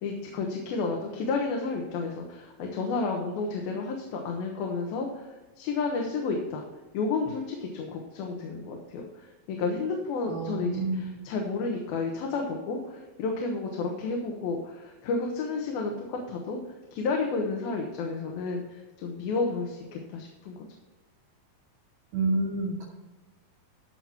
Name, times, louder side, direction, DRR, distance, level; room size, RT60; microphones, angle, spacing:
voice 1, 0.0-5.3 5.6-6.6 6.9-16.6 16.9-20.7, left 4 dB, 80° left, 1 dB, 3.1 m, -31 dB
voice 2, 10.2-11.1 22.1-22.8, right 2 dB, 75° right, -8 dB, 4.0 m, -29 dB
14.5 x 6.1 x 4.4 m, 1.2 s
omnidirectional pair, 4.2 m